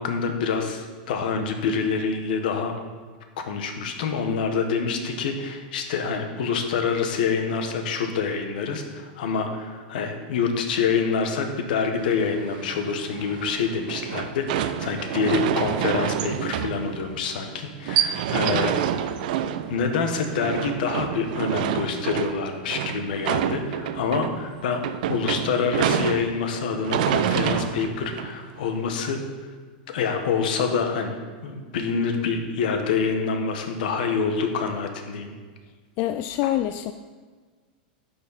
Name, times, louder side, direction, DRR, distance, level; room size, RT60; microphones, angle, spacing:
voice 1, 0.0-2.7 3.4-19.1 19.7-24.8 25.1-29.2 29.9-35.3, left 5 dB, 70° left, 5 dB, 1.5 m, -26 dB
sound 1, 12.0-28.9, right 10 dB, 65° right, 0.6 m, -28 dB
voice 2, 36.0-36.9, left 13 dB, 40° left, 10 dB, 0.3 m, -25 dB
11.0 x 7.2 x 4.2 m, 1.5 s
supercardioid pair, 150°, 5 cm